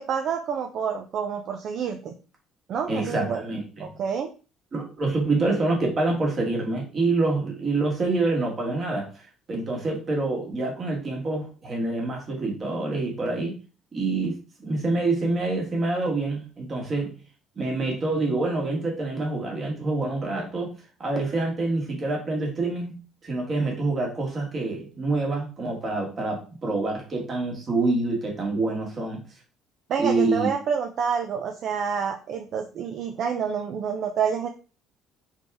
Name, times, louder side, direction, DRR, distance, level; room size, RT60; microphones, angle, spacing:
voice 1, 0.0-2.1 2.7-3.4 3.8-4.3 29.9-34.5, right 7 dB, 45° right, 5 dB, 0.4 m, -28 dB
voice 2, 2.9-4.0 4.7-9.1 9.5-13.5 13.9-17.1 17.6-20.7 21.0-29.2 30.0-30.5, right 2 dB, 30° right, -1 dB, 1.6 m, -26 dB
4.0 x 3.6 x 3.5 m, 0.35 s
cardioid pair, 165°, 0 cm